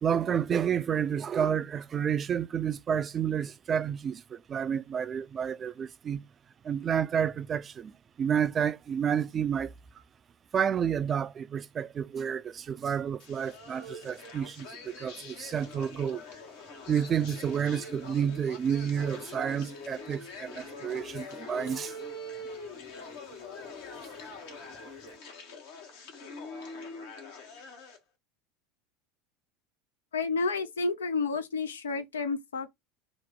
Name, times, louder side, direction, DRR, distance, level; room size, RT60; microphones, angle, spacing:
voice 1, 0.0-6.2 6.6-7.9 8.2-9.7 10.5-16.2 16.9-21.9, right 8 dB, 30° right, 0.3 m, -30 dB
sound 1, 13.2-28.0, left 3 dB, 65° left, 0.9 m, -44 dB
voice 2, 30.1-32.7, left 4 dB, 80° left, 0.4 m, -30 dB
2.9 x 2.1 x 3.6 m
figure-of-eight pair, 75°, 0 cm